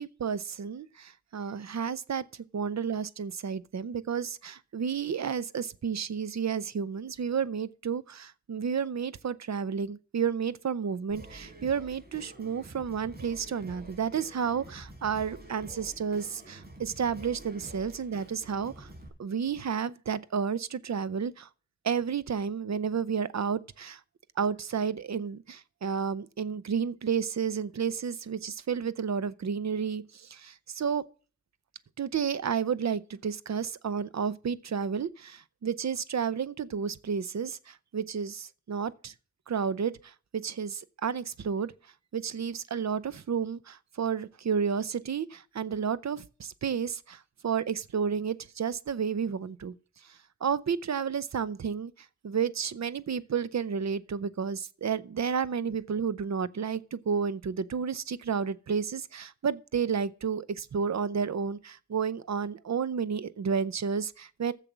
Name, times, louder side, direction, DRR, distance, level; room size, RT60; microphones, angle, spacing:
voice 1, 0.0-2.2 2.5-18.9 19.2-21.5 21.8-24.0 24.4-31.0 32.0-39.1 39.5-41.7 42.1-49.7 50.4-51.9 52.2-64.5, right 6 dB, 70° right, 0.7 m, -31 dB
Singing, 11.1-19.1, right 1 dB, 35° right, 4.0 m, -48 dB
7.5 x 6.9 x 8.1 m
wide cardioid pair, 105°, 29 cm